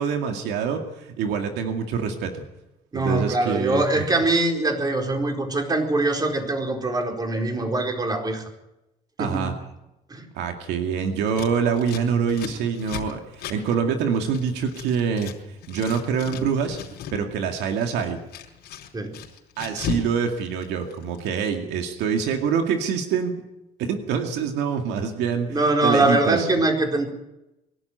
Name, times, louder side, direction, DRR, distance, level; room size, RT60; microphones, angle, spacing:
voice 1, 0.0-2.4 2.9-4.1 9.2-9.5 10.3-15.3 15.7-16.8 17.1-18.2 19.6-23.3 23.8-25.6 25.8-26.5, right 6 dB, 85° right, 4 dB, 2.3 m, -25 dB
voice 2, 2.9-8.4 9.2-9.6 10.1-10.3 18.9-19.1 25.5-27.1, right 2 dB, 25° right, 2 dB, 4.5 m, -23 dB
Scissors, 11.3-15.4 15.6-17.2 17.5-20.1 20.4-21.3, left 8 dB, 75° left, 4.5 m, -36 dB
23.0 x 12.0 x 9.4 m, 0.92 s
cardioid pair, 110°, 17 cm